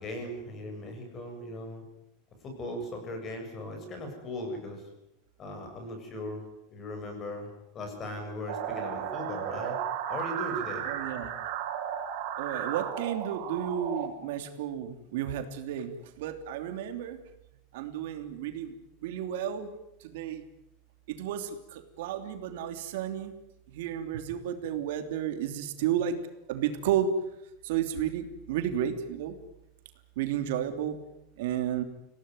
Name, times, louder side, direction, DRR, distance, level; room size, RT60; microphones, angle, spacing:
voice 1, 0.0-1.8 2.4-4.8 5.4-6.4 6.7-9.8 10.1-10.9, left 1 dB, 25° left, 4 dB, 7.4 m, -38 dB
sound 1, 8.5-14.1, right 9 dB, 55° right, 6.4 m, -34 dB
voice 2, 10.9-11.3 12.4-17.2 17.7-18.7 19.0-19.7 20.0-20.5 21.1-23.3 23.7-26.2 26.5-27.1 27.6-29.3 30.2-31.0 31.4-31.8, right 10 dB, 75° right, 7 dB, 3.0 m, -32 dB
25.5 x 17.5 x 9.8 m, 0.86 s
supercardioid pair, 155°, 0 cm